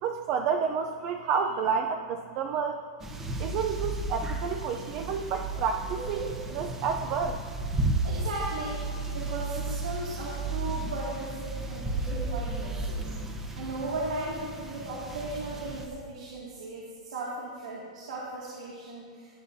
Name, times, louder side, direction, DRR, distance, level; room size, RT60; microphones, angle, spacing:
voice 1, 0.0-2.8 3.4-7.4, right 6 dB, 35° right, 5 dB, 0.5 m, -30 dB
sound 1, 3.0-15.9, right 2 dB, 10° right, 0.8 m, -34 dB
voice 2, 8.0-8.8 9.1-13.1 13.6-19.4, right 2 dB, 90° right, -5 dB, 2.3 m, -36 dB
18.0 x 8.6 x 2.7 m, 2.1 s
supercardioid pair, 160°, 4 cm